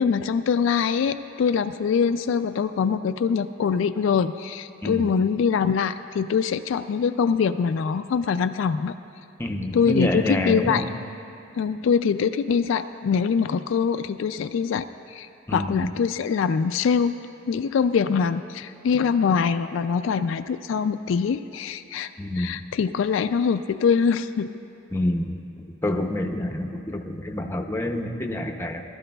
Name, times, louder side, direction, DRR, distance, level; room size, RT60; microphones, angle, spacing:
voice 1, 0.0-8.9 9.7-10.8 11.6-17.2 17.5-22.1 22.4-24.5, left 6 dB, 70° left, 10 dB, 0.3 m, -23 dB
voice 2, 4.8-5.1 9.4-10.9 15.5-15.9 22.2-22.6 24.9-25.4 25.8-28.8, left 1 dB, 10° left, 4 dB, 0.6 m, -27 dB
19.5 x 12.5 x 2.3 m, 2.9 s
head